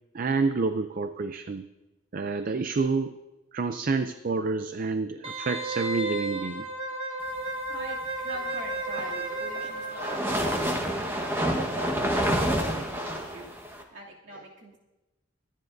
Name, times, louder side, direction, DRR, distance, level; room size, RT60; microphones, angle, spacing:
voice 1, 0.1-1.6 2.1-3.1 3.5-6.7, right 4 dB, 45° right, 9 dB, 0.5 m, -28 dB
Wind instrument woodwind instrument, 5.2-10.8 11.1-11.2, right 2 dB, 30° right, 1.4 m, -33 dB
voice 2, 7.7-13.5 13.9-14.8, right 1 dB, 60° right, -3 dB, 2.6 m, -42 dB
sound 1, 8.7-13.8, equal, 10° right, 1.2 m, -28 dB
24.5 x 10.0 x 2.6 m, 1.1 s
head